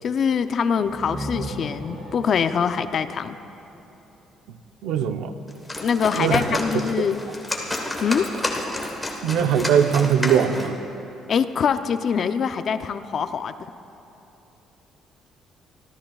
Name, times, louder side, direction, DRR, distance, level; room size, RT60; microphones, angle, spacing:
voice 1, 0.0-3.4 5.8-7.2 8.0-8.3 11.3-13.7, left 6 dB, 40° left, 10 dB, 0.4 m, -24 dB
sound 1, 0.8-4.5, right 1 dB, 25° right, 3.8 m, -37 dB
voice 2, 4.8-5.3 6.1-6.4 9.2-10.8, right 8 dB, 80° right, 8 dB, 0.6 m, -20 dB
sound 2, 5.5-10.8, left 1 dB, 10° left, 1.3 m, -30 dB
26.5 x 13.5 x 2.3 m, 2.9 s
cardioid pair, 155°, 0 cm